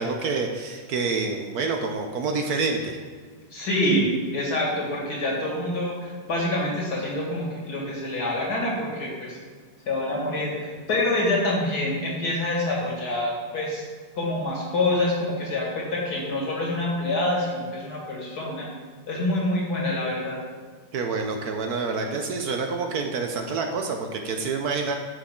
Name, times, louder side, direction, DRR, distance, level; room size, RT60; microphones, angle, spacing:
voice 1, 0.0-3.0 20.9-24.9, right 4 dB, 65° right, 4 dB, 1.1 m, -27 dB
voice 2, 3.5-9.4 9.9-13.8 14.2-18.7 19.1-20.4, left 1 dB, 60° left, -3 dB, 2.4 m, -26 dB
9.6 x 6.3 x 3.7 m, 1.5 s
omnidirectional pair, 1.9 m